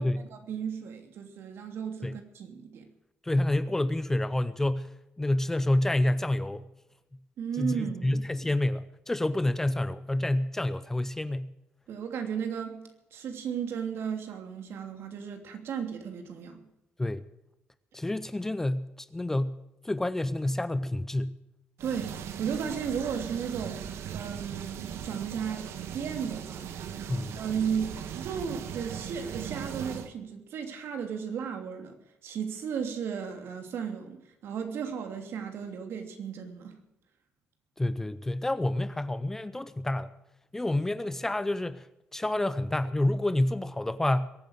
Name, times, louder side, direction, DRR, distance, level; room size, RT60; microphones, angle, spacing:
voice 1, 0.0-2.9 7.4-8.2 11.9-12.8 13.1-16.6 21.8-23.8 24.1-26.7 27.4-32.0 32.2-36.7, right 7 dB, 65° right, 2.9 m, -35 dB
voice 2, 3.2-6.7 7.6-11.5 17.0-17.2 17.9-21.4 27.1-27.3 37.8-40.1 40.5-41.8 42.1-44.3, left 1 dB, 10° left, 0.6 m, -28 dB
sound 1, 21.8-30.1, right 9 dB, 80° right, 1.5 m, -39 dB
22.5 x 9.3 x 6.5 m
cardioid pair, 170°, 4 cm